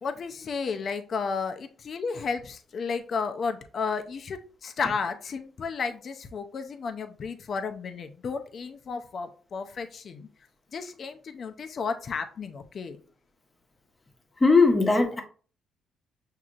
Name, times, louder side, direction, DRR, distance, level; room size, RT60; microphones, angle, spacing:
voice 1, 0.0-10.3 10.7-13.0, left 5 dB, 50° left, 0.5 m, -33 dB
voice 2, 14.4-15.2, left 3 dB, 20° left, 0.9 m, -19 dB
6.1 x 2.8 x 2.5 m
cardioid pair, 90°, 0 cm